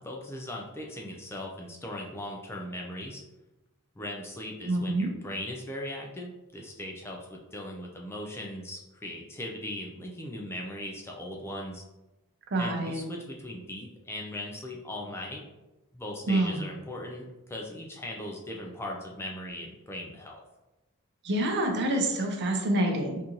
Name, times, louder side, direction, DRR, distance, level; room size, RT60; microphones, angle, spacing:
voice 1, 0.0-3.2 4.0-11.8 12.6-15.5 15.9-20.4, left 1 dB, 10° left, -1 dB, 0.3 m, -39 dB
voice 2, 4.7-5.1 12.5-13.0 16.3-16.7 21.2-23.2, right 1 dB, 50° right, 2 dB, 0.6 m, -27 dB
3.6 x 2.5 x 2.9 m, 1.0 s
head